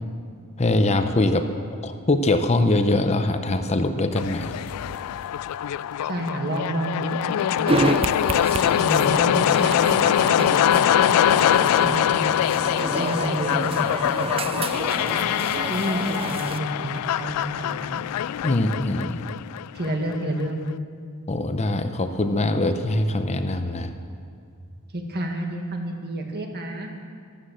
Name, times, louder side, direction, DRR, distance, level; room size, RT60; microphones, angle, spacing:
voice 1, 0.6-1.5 1.8-4.5 18.4-19.3 21.3-23.9, left 2 dB, 30° left, 8 dB, 0.7 m, -22 dB
sound 1, 4.2-20.2, left 10 dB, 85° left, 0.3 m, -23 dB
voice 2, 6.0-8.0 8.8-12.4 12.8-15.3 15.7-18.0 19.7-20.6 24.9-26.9, right 1 dB, 45° right, 2 dB, 1.8 m, -30 dB
sound 2, 7.7-16.6, right 3 dB, 25° right, 0.4 m, -29 dB
13.0 x 12.0 x 7.5 m, 2.3 s
head